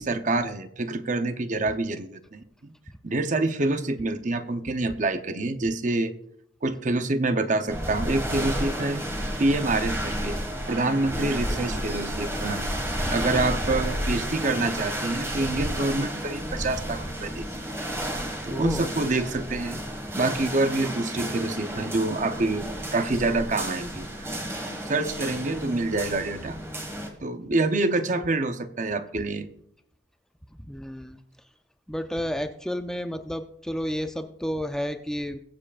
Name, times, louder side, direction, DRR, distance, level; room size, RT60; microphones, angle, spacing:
voice 1, 0.0-2.7 3.0-6.1 6.6-9.0 9.4-10.4 10.7-12.7 13.1-17.7 18.4-19.8 20.2-22.7 22.9-24.3 24.7-26.6 27.2-29.5, right 2 dB, 45° right, 9 dB, 0.8 m, -27 dB
sound 1, 7.7-27.1, equal, 15° right, 1.7 m, -32 dB
voice 2, 18.5-18.9 29.1-29.2 30.5-31.2 31.9-35.4, equal, 5° left, 7 dB, 0.5 m, -31 dB
22.0 x 7.6 x 2.5 m, 0.70 s
head